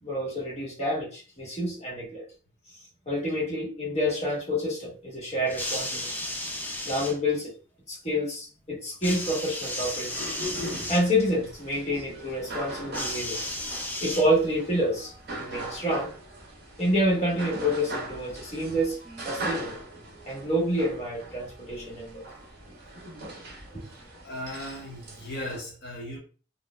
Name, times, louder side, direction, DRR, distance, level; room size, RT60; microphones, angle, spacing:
voice 1, 0.0-2.2 3.1-6.1 6.8-7.5 7.9-10.1 10.9-13.4 14.0-15.1 15.4-16.1 16.8-19.0 19.2-19.8 20.3-22.0 23.7-23.9, equal, 30° left, 1.4 m, -28 dB
sound 1, 5.5-7.2 9.0-11.1 12.9-14.6 15.6-15.7, left 1 dB, 10° left, 0.4 m, -34 dB
sound 2, 10.1-25.6, right 1 dB, 50° right, 1.4 m, -40 dB
voice 2, 24.2-26.2, left 1 dB, 55° left, 0.9 m, -37 dB
4.1 x 2.6 x 2.2 m
head